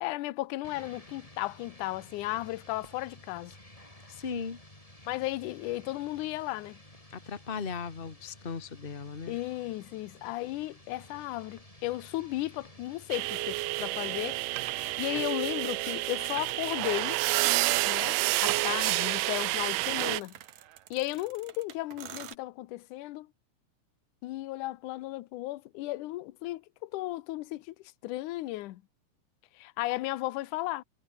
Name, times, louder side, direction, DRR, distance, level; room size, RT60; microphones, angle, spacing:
voice 1, 0.0-3.6 5.1-6.8 9.3-14.4 14.7-17.2 17.9-20.4 20.9-23.3 24.2-27.8 28.0-28.8 29.6-30.8, left 17 dB, 80° left, 2.3 m, -35 dB
sound 1, 0.6-15.3, left 1 dB, 10° left, 5.0 m, -53 dB
voice 2, 4.1-4.6 7.1-9.4, left 5 dB, 60° left, 0.5 m, -37 dB
sound 2, 13.1-20.2, right 21 dB, 85° right, 2.2 m, -29 dB
sound 3, 16.2-17.2 18.2-22.4, right 11 dB, 65° right, 2.5 m, -49 dB
omnidirectional pair, 3.7 m